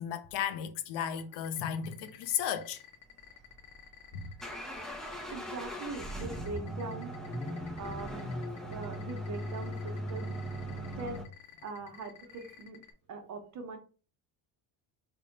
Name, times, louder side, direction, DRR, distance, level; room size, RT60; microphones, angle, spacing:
voice 1, 0.0-2.8 4.1-4.3, left 9 dB, 70° left, 0.6 m, -34 dB
sound 1, 1.0-12.9, left 10 dB, 40° left, 0.8 m, -52 dB
sound 2, 3.4-11.3, equal, ahead, 0.6 m, -39 dB
voice 2, 5.3-7.1 7.8-8.3 8.7-10.4 11.0-11.2 11.6-12.8 13.1-13.8, right 4 dB, 40° right, 0.8 m, -41 dB
3.4 x 2.2 x 3.9 m
cardioid pair, 110°, 43 cm